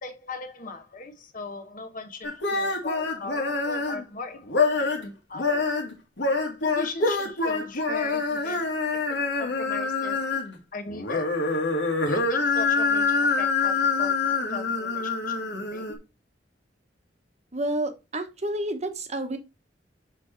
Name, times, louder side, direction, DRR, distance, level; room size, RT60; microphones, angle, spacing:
voice 1, 0.0-4.7 5.0-5.7 6.6-8.6 9.4-10.2 10.7-11.4 12.1-15.4 15.7-16.0, left 3 dB, 50° left, 1.1 m, -39 dB
sound 1, 2.2-4.0 4.5-5.1 5.3-10.6 10.9-15.9, left 4 dB, 85° left, 1.9 m, -26 dB
voice 2, 17.5-19.4, right 1 dB, 40° right, 1.0 m, -29 dB
6.4 x 4.6 x 4.4 m
head